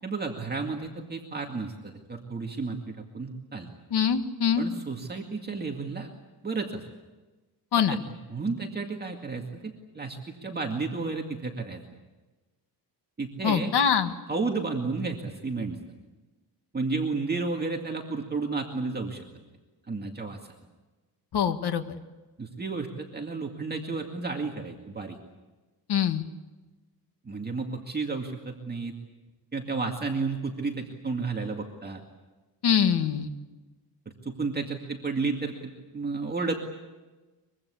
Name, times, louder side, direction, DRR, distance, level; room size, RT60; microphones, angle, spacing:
voice 1, 0.0-3.7 4.6-6.1 6.4-6.8 7.9-8.0 8.3-11.8 13.2-13.7 14.3-15.8 16.7-19.2 19.9-20.4 22.4-25.2 27.3-28.9 29.5-32.0 34.2-36.5, right 4 dB, 25° right, 1 dB, 2.2 m, -32 dB
voice 2, 3.9-4.6 7.7-8.0 13.4-14.1 21.3-21.8 25.9-26.2 32.6-33.3, left 8 dB, 70° left, 8 dB, 1.9 m, -24 dB
24.5 x 23.0 x 8.4 m, 1.2 s
wide cardioid pair, 160°, 40 cm